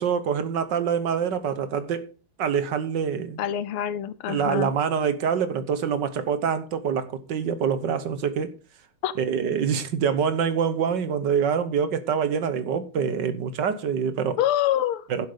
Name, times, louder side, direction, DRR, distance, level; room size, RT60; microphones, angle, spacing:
voice 1, 0.0-2.1 2.4-3.4 4.3-8.5 9.2-14.4 15.1-15.3, right 7 dB, 60° right, 1.4 m, -25 dB
voice 2, 3.4-4.7 9.0-9.1 14.4-15.0, left 11 dB, 80° left, 1.7 m, -25 dB
11.0 x 7.9 x 5.0 m
omnidirectional pair, 2.4 m